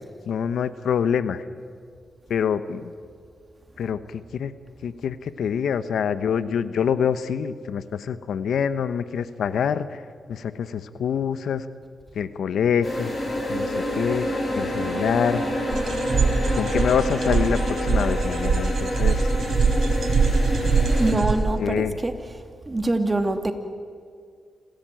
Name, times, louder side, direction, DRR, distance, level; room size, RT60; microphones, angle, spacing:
voice 1, 0.3-1.5 2.3-2.9 3.8-4.5 4.8-10.0 10.3-11.7 12.1-13.1 13.5-15.4 16.6-19.3 21.6-22.0, left 7 dB, 85° left, 14 dB, 0.9 m, -26 dB
sound 1, 12.8-21.1, left 1 dB, 45° left, 6.5 m, -28 dB
sound 2, 15.7-21.3, right 4 dB, 70° right, 3.6 m, -23 dB
voice 2, 21.0-22.4 22.7-23.5, right 2 dB, 25° right, 7 dB, 2.3 m, -24 dB
27.0 x 15.5 x 9.0 m, 2.1 s
cardioid pair, 65°, 0 cm